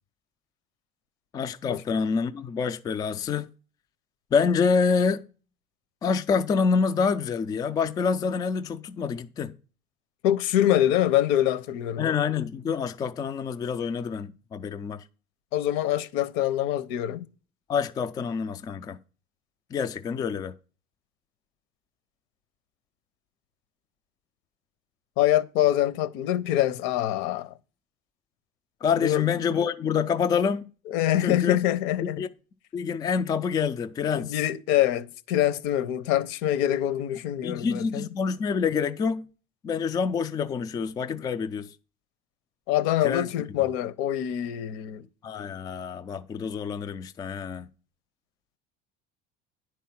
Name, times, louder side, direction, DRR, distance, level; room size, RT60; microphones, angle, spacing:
voice 1, 1.3-3.5 4.3-5.2 6.0-9.5 12.0-15.0 17.7-19.0 19.7-20.5 28.8-30.7 31.2-31.6 32.0-32.3 32.7-34.4 37.4-39.3 39.6-41.7 43.0-43.3 45.2-47.7, left 6 dB, 20° left, 0.3 m, -27 dB
voice 2, 10.2-12.0 15.5-17.3 25.2-27.5 29.0-29.2 30.9-32.2 34.1-38.1 42.7-45.0, left 12 dB, 70° left, 0.8 m, -25 dB
10.0 x 4.5 x 5.9 m
cardioid pair, 170°, 20 cm